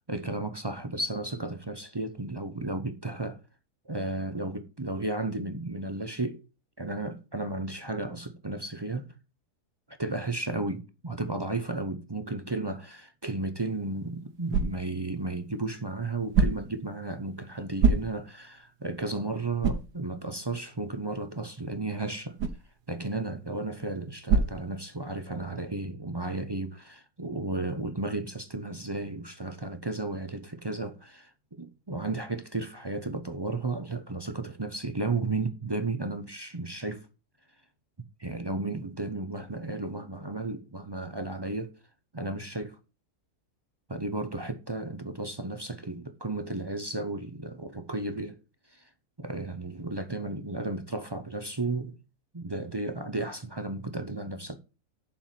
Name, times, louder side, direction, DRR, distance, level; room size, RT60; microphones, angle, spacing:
voice 1, 0.1-3.4 3.8-6.4 6.8-9.1 9.9-22.4 22.9-37.1 38.2-41.7 42.1-42.8 43.9-48.4 48.7-48.9 49.2-52.0 52.3-54.6, right 2 dB, 30° right, 0.5 m, -34 dB
sound 1, 13.6-25.4, right 5 dB, 85° right, 1.5 m, -32 dB
7.2 x 5.6 x 7.5 m
omnidirectional pair, 1.7 m